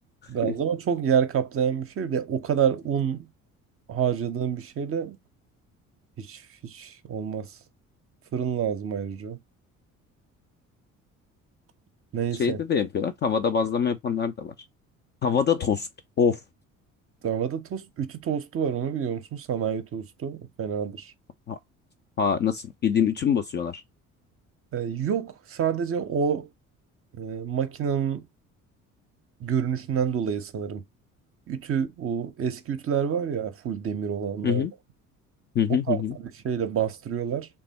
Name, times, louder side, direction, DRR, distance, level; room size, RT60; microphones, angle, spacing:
voice 1, 0.3-3.3 3.9-5.2 6.2-7.5 8.3-9.4 12.1-12.6 17.2-21.1 24.7-26.5 27.2-28.2 29.4-30.8 31.5-34.7 35.9-37.5, right 8 dB, 35° right, 0.6 m, -28 dB
voice 2, 12.4-14.5 15.2-15.9 16.2-16.4 21.5-21.6 22.2-23.8 34.4-34.7 35.6-36.2, left 7 dB, 25° left, 0.4 m, -24 dB
3.3 x 2.3 x 3.9 m
figure-of-eight pair, 50°, 42 cm